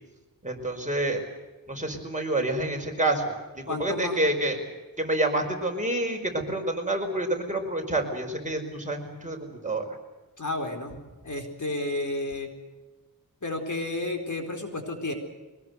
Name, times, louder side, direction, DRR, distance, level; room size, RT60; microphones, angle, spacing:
voice 1, 0.4-1.2 1.7-3.4 3.7-4.6 5.0-10.0, right 1 dB, 20° right, 2 dB, 4.9 m, -28 dB
voice 2, 3.7-4.2 10.4-12.5 13.4-15.1, left 2 dB, 55° left, 3 dB, 4.3 m, -32 dB
23.5 x 20.5 x 8.2 m, 1.2 s
wide cardioid pair, 95°, 35 cm